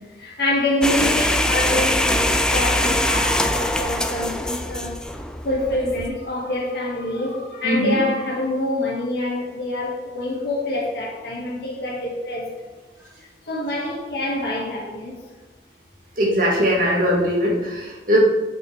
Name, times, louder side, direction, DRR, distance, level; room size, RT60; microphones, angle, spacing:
voice 1, 0.2-5.0 5.4-12.5 13.5-15.1, left 1 dB, 60° left, -3 dB, 2.2 m, -26 dB
sound 1, 0.8-6.1, left 1 dB, 5° left, 0.4 m, -22 dB
voice 2, 7.6-8.0 16.2-18.2, equal, 50° right, -3 dB, 2.1 m, -20 dB
8.8 x 6.4 x 3.6 m, 1.3 s
head